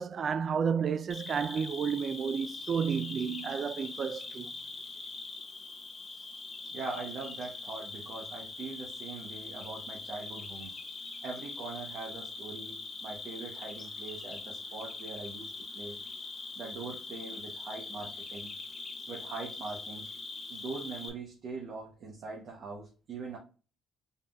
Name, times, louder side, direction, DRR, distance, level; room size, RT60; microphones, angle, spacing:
voice 1, 0.0-4.5, right 6 dB, 50° right, 0.3 m, -31 dB
Cricket, 1.1-21.1, left 3 dB, 40° left, 1.3 m, -42 dB
voice 2, 6.7-10.7 11.2-16.0 16.5-18.5 19.1-20.1 20.5-23.4, right 4 dB, 70° right, 1.0 m, -42 dB
4.3 x 3.6 x 2.4 m
cardioid pair, 90°, 0 cm